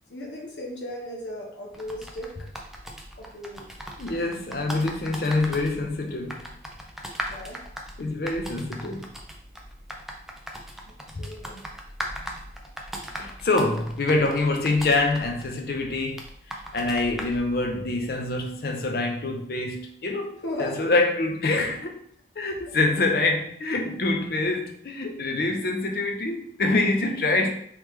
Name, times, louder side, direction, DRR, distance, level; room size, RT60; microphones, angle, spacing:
voice 1, 0.1-2.3 3.2-3.7 7.2-7.6 10.9-11.6 20.3-20.9, left 1 dB, 80° left, 0.9 m, -36 dB
sound 1, 1.7-17.4, equal, ahead, 0.3 m, -39 dB
voice 2, 4.0-6.5 8.0-9.1 11.1-11.2 12.2-12.4 13.1-16.2 16.5-20.3 20.6-22.1 22.4-27.5, left 2 dB, 50° left, 0.5 m, -25 dB
3.4 x 3.2 x 3.2 m
head